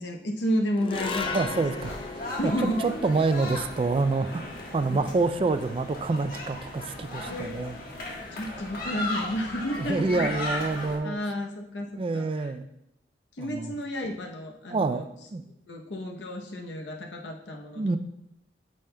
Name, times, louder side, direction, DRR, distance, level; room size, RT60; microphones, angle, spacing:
voice 1, 0.0-1.5 1.8-2.0 2.4-2.8 4.9-5.1 7.3-7.5 8.3-10.3 11.0-12.5 13.3-15.0 15.7-18.0, equal, 85° left, 2 dB, 0.8 m, -31 dB
sound 1, 0.8-7.2, left 4 dB, 30° left, 0.5 m, -38 dB
sound 2, 0.9-11.0, left 1 dB, 55° left, 1.4 m, -36 dB
voice 2, 1.3-2.5 2.8-7.8 8.0-8.1 9.8-11.2 12.0-12.6 13.4-13.7 14.7-15.4 17.8-18.0, right 3 dB, 30° right, 11 dB, 0.3 m, -27 dB
8.9 x 6.3 x 2.2 m, 0.83 s
head